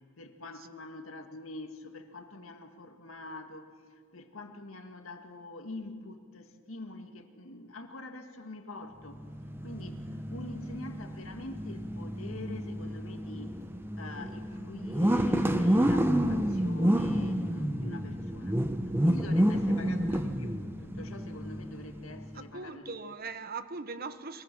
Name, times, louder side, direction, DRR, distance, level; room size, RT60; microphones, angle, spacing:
voice 1, 0.2-3.7 4.1-9.3 9.6-13.6 14.0-23.0, left 2 dB, 85° left, 5 dB, 1.9 m, -45 dB
sound 1, 9.1-22.4, equal, 10° right, 0.9 m, -30 dB
voice 2, 22.3-24.4, right 4 dB, 50° right, 11 dB, 1.1 m, -40 dB
22.5 x 22.5 x 6.1 m, 2.1 s
head